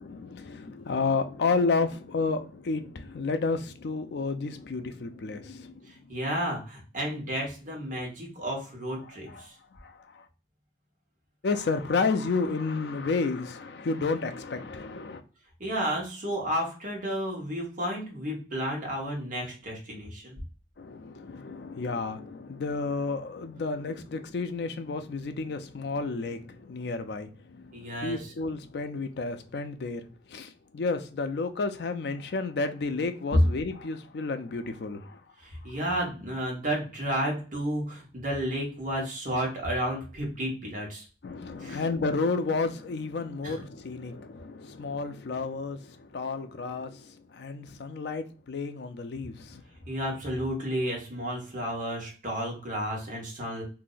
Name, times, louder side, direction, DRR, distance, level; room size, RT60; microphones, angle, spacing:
voice 1, 0.0-5.9 9.3-9.5 9.8-10.2 11.4-15.2 20.8-35.2 41.2-49.6, left 4 dB, 65° left, 0.4 m, -31 dB
voice 2, 6.1-9.5 15.6-20.4 27.7-28.3 35.4-41.0 41.6-41.8 43.4-43.6 49.9-53.6, equal, 50° right, 1.1 m, -32 dB
2.6 x 2.1 x 3.8 m
head